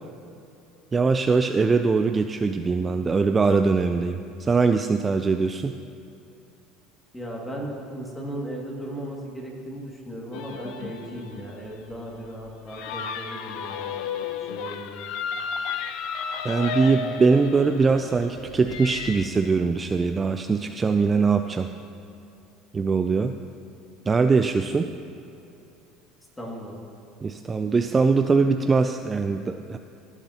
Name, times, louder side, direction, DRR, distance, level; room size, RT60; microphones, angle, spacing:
voice 1, 0.9-5.7 16.4-21.7 22.7-23.3 24.1-24.9 27.2-29.8, right 4 dB, 25° right, 7 dB, 0.3 m, -22 dB
voice 2, 7.1-14.0 14.4-15.0 26.4-26.8, equal, 10° left, -2 dB, 2.1 m, -36 dB
sound 1, 10.3-19.3, left 6 dB, 70° left, 0.5 m, -33 dB
15.5 x 7.1 x 2.8 m, 2.7 s
supercardioid pair, 100°, 0 cm